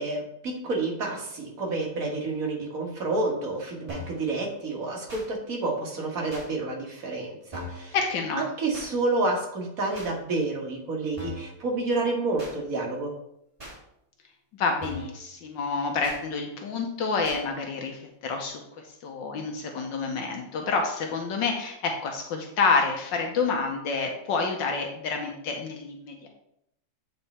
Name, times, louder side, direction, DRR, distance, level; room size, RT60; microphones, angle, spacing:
voice 1, 0.0-8.0 8.3-13.2, right 3 dB, 50° right, 0 dB, 1.8 m, -29 dB
sound 1, 3.9-4.2 5.1-5.3 6.3-6.5 7.5-7.9 8.7-8.9 9.9-10.1 11.2-11.5 12.4-12.6 13.6-13.8 14.8-15.2 16.0-16.2 17.2-17.4, left 1 dB, 20° right, 2.3 m, -39 dB
voice 2, 7.9-8.4 14.6-18.6 19.0-26.3, left 4 dB, 75° left, 2 dB, 1.5 m, -28 dB
8.9 x 4.3 x 4.2 m, 0.78 s
omnidirectional pair, 2.0 m